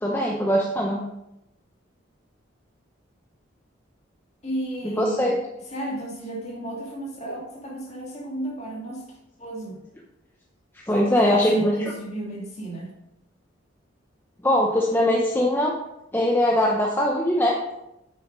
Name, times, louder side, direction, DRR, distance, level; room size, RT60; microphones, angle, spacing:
voice 1, 0.0-1.0 4.8-5.4 10.9-11.7 14.4-15.7 16.1-17.6, left 1 dB, 10° left, -1 dB, 0.7 m, -21 dB
voice 2, 4.4-5.4 5.7-9.8 10.9-12.9, right 1 dB, 35° left, -2 dB, 2.2 m, -33 dB
7.8 x 6.3 x 5.1 m, 0.89 s
head